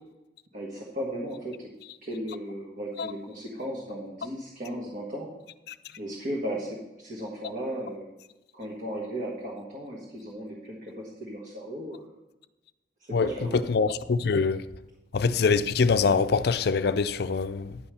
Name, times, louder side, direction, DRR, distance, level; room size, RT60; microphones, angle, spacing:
voice 1, 0.5-1.7 2.0-5.3 6.0-8.1 8.5-12.1 13.0-13.6, equal, 45° right, 1.6 m, -36 dB
voice 2, 13.7-14.6 15.1-17.8, left 5 dB, 65° left, 0.5 m, -24 dB
10.5 x 5.6 x 6.9 m
head